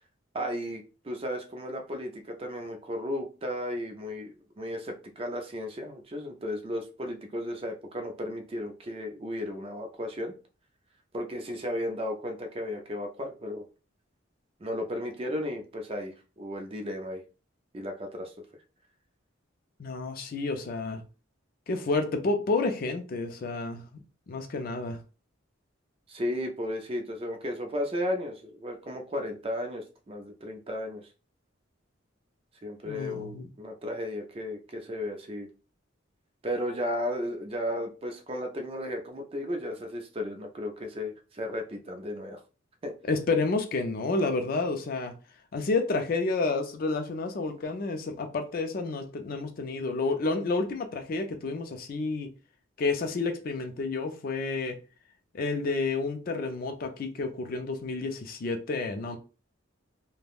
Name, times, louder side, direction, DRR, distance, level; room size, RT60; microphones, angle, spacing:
voice 1, 0.3-10.3 11.1-13.6 14.6-17.2 17.7-18.3 26.1-31.1 32.6-35.5 36.4-42.4 42.8-42.9, left 1 dB, 30° right, 0.4 m, -34 dB
voice 2, 19.8-21.0 21.7-25.0 32.9-33.5 43.1-45.1 45.5-52.3 52.8-54.8 55.3-59.2, left 3 dB, 45° left, 0.4 m, -30 dB
3.3 x 2.1 x 2.3 m
head